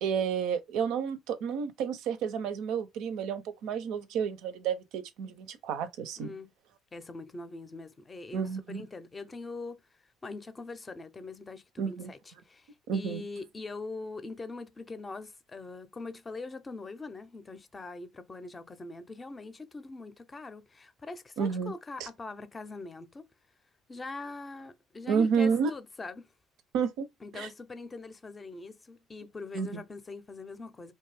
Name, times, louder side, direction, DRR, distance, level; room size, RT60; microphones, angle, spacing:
voice 1, 0.0-6.3 8.3-8.8 11.8-12.1 12.9-13.2 21.4-21.7 22.0-22.1 25.1-25.7 26.7-27.1 27.3-27.5 29.5-29.8, right 6 dB, 75° right, 0.5 m, -30 dB
voice 2, 6.2-6.5 6.9-9.8 10.2-23.2 23.9-26.3 27.2-30.9, left 3 dB, 30° left, 0.5 m, -42 dB
2.6 x 2.3 x 3.2 m
supercardioid pair, 75°, 0 cm